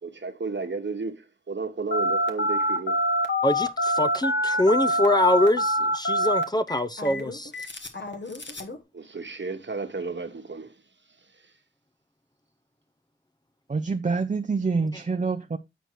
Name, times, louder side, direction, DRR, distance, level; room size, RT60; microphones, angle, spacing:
voice 1, 0.0-3.0 8.9-10.8 11.3-11.5, right 4 dB, 60° right, 1.2 m, -33 dB
Telephone, 1.9-8.8, equal, 60° left, 1.3 m, -25 dB
voice 2, 3.4-7.5, left 1 dB, 20° left, 0.5 m, -24 dB
voice 3, 13.7-15.6, right 4 dB, 35° right, 0.5 m, -26 dB
8.0 x 4.5 x 4.5 m
wide cardioid pair, 45°, 21 cm